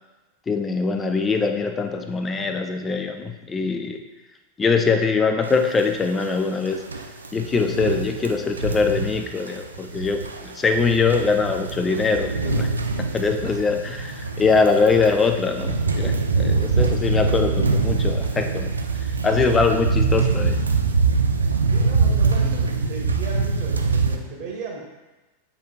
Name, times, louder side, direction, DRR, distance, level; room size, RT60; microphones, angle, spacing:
voice 1, 0.5-4.0 4.6-6.8 7.3-12.7 13.0-18.7 19.2-20.6, left 4 dB, 20° left, 6 dB, 0.5 m, -22 dB
sound 1, 5.4-5.5 5.8-5.9 6.1-6.3 6.7-24.2, right 4 dB, 75° right, 0.5 m, -23 dB
voice 2, 21.7-24.8, right 3 dB, 40° right, -1 dB, 1.6 m, -35 dB
8.4 x 4.7 x 2.4 m, 1.1 s
figure-of-eight pair, 90°, 0 cm